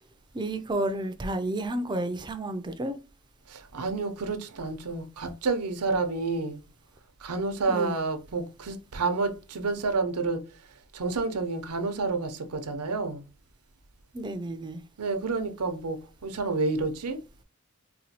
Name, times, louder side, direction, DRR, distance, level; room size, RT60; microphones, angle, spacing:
voice 1, 0.3-3.0 7.7-8.0 14.1-14.8, right 1 dB, 20° right, 0.4 m, -31 dB
voice 2, 3.5-6.6 7.2-10.4 10.9-13.2 15.0-17.2, right 3 dB, 90° right, 0.6 m, -29 dB
4.1 x 2.2 x 2.8 m
head